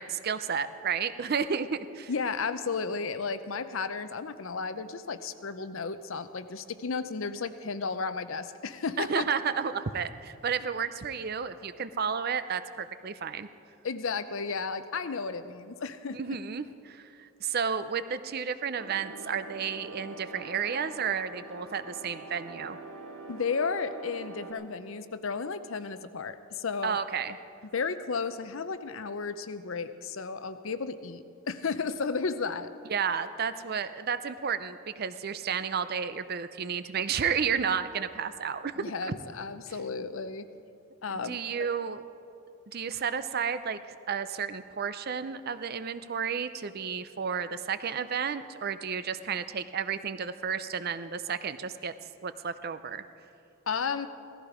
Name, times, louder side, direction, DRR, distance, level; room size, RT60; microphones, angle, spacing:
voice 1, 0.0-2.1 9.0-13.5 16.1-22.8 26.8-27.4 32.9-39.1 41.1-42.0 42.7-51.9 52.2-53.0, right 6 dB, 50° right, 12 dB, 0.5 m, -32 dB
voice 2, 2.1-9.3 13.8-16.2 23.3-27.0 27.7-32.7 38.8-40.5 41.0-41.4 53.7-54.1, left 5 dB, 75° left, 11 dB, 0.7 m, -33 dB
sound 1, 18.8-24.5, right 2 dB, 75° right, 1.8 m, -45 dB
16.5 x 14.5 x 5.0 m, 2.5 s
head